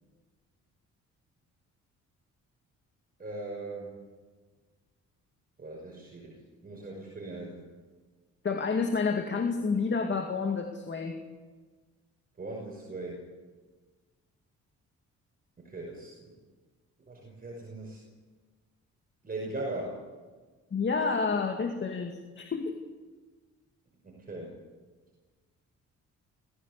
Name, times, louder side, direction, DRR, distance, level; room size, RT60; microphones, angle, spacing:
voice 1, 3.2-3.9 5.6-7.6 12.4-13.2 15.6-16.1 17.1-18.0 19.2-20.0 24.0-24.6, right 2 dB, 30° right, -1 dB, 5.8 m, -39 dB
voice 2, 8.4-11.2 20.7-22.8, left 4 dB, 40° left, 4 dB, 2.3 m, -29 dB
28.5 x 16.0 x 8.2 m, 1.4 s
cardioid pair, 90°, 30 cm